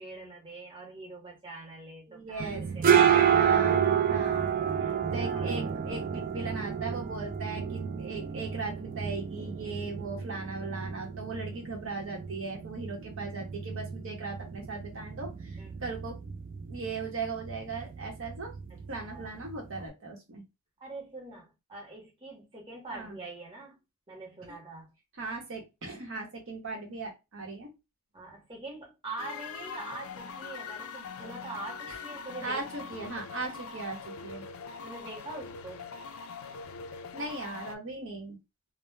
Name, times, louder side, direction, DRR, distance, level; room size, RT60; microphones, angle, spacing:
voice 1, 0.0-2.5 2.7-3.4 4.8-5.6 15.6-15.7 18.7-18.8 19.1-19.4 20.8-23.8 24.1-24.9 28.1-33.1 34.8-35.9, right 2 dB, 25° right, 0.8 m, -44 dB
voice 2, 2.1-2.7 3.4-4.5 5.1-16.2 16.7-18.5 18.9-20.4 22.9-23.2 24.5-24.6 25.2-27.7 31.9-32.0 32.4-34.4 37.1-38.4, right 3 dB, 65° right, 0.8 m, -38 dB
sound 1, 2.4-19.9, right 8 dB, 40° right, 0.3 m, -30 dB
sound 2, 29.2-37.8, left 5 dB, 70° left, 0.3 m, -42 dB
2.1 x 2.0 x 3.1 m
head